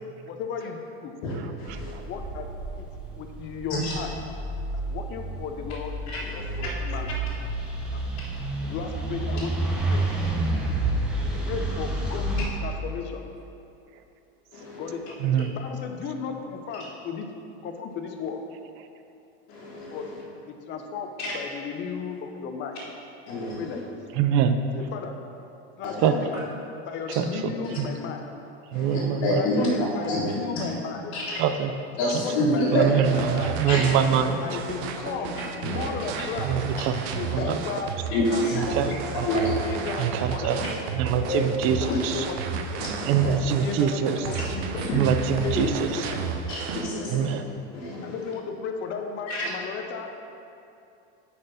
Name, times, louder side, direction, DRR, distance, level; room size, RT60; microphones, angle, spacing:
voice 1, 0.3-1.1 2.0-2.5 2.8-2.9 3.2-4.1 4.9-5.9 6.6-7.1 7.9-8.0 8.6-9.5 9.9-10.0 11.4-13.2 14.7-17.3 17.6-18.4 19.9-20.1 20.5-22.8 23.5-24.0 24.8-25.1 25.8-26.4 26.9-28.3 29.4-31.1 32.0-33.6 34.4-36.5 37.1-37.9 38.3-38.9 39.6-40.8 41.6-42.6 43.6-44.8 45.4-46.3 48.0-50.1, left 6 dB, 35° left, 4 dB, 0.7 m, -34 dB
voice 2, 1.2-1.9 3.8-3.9 6.1-6.6 11.2-11.5 14.5-15.0 19.5-20.2 21.2-21.3 23.3-23.8 25.8-26.1 28.7-30.2 30.6-30.7 31.1-31.4 32.0-32.8 33.7-33.8 35.6-35.9 37.4-37.5 38.1-38.6 39.2-39.9 41.3-41.4 42.0-42.1 42.8-43.3 44.4-44.5 44.7-45.0 46.5-47.4 47.7-48.3 49.3-49.5, left 1 dB, 50° left, -10 dB, 1.8 m, -28 dB
sound 1, 1.7-12.5, right 2 dB, 5° right, 0.7 m, -30 dB
voice 3, 15.2-15.5 24.2-24.6 26.0-26.1 27.2-27.3 27.8-27.9 28.7-29.4 31.4-31.7 32.4-34.4 36.4-37.0 37.3-37.6 38.7-39.3 40.0-40.6 40.9-42.2 43.1-44.2 44.9-45.9 47.1-47.4, right 8 dB, 40° right, 9 dB, 0.4 m, -24 dB
sound 2, 33.0-46.9, right 6 dB, 70° right, 0.7 m, -33 dB
8.4 x 4.3 x 5.0 m, 2.7 s
supercardioid pair, 145°, 33 cm